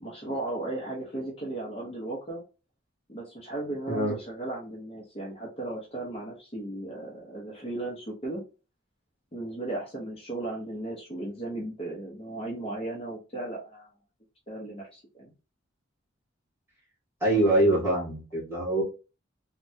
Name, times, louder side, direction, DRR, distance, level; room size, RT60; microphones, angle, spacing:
voice 1, 0.0-2.4 3.1-8.4 9.3-13.9 14.5-15.3, right 2 dB, 30° left, -3 dB, 0.7 m, -36 dB
voice 2, 17.2-18.8, right 1 dB, 15° right, -6 dB, 1.7 m, -24 dB
3.3 x 2.2 x 2.6 m, 0.32 s
head